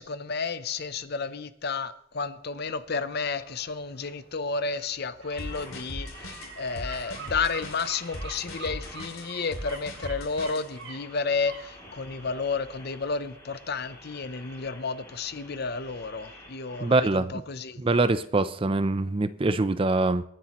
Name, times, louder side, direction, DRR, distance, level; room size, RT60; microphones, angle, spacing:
voice 1, 0.0-17.8, left 4 dB, 45° left, 0.6 m, -32 dB
sound 1, 2.3-15.2 15.5-15.6, right 4 dB, 65° right, 2.9 m, -48 dB
sound 2, 5.3-17.0, left 1 dB, 15° left, 2.7 m, -50 dB
sound 3, 5.4-10.7, left 1 dB, 75° left, 2.5 m, -39 dB
voice 2, 16.8-17.3 17.8-20.2, right 2 dB, 25° right, 0.4 m, -24 dB
25.5 x 9.9 x 3.0 m
head